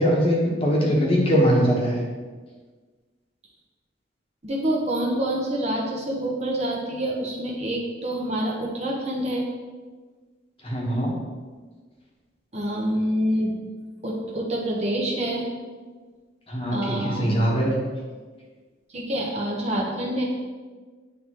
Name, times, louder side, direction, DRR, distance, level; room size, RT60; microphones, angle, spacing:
voice 1, 0.0-2.0 10.6-11.1 16.5-17.7, equal, 30° left, -3 dB, 1.1 m, -21 dB
voice 2, 4.4-9.5 12.5-13.6 14.0-15.5 16.7-17.6 18.9-20.2, right 1 dB, 35° right, -3 dB, 0.9 m, -27 dB
9.5 x 3.5 x 2.9 m, 1.4 s
head